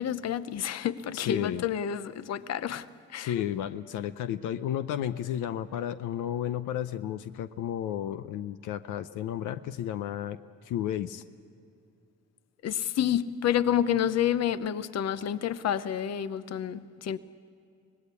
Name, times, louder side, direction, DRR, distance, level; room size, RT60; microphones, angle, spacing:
voice 1, 0.0-3.4 12.6-17.2, left 10 dB, 60° left, 0.8 m, -29 dB
voice 2, 1.1-1.6 3.2-10.4 10.6-11.2, left 10 dB, 90° left, 0.7 m, -32 dB
24.5 x 19.0 x 8.3 m
cardioid pair, 90°, 30 cm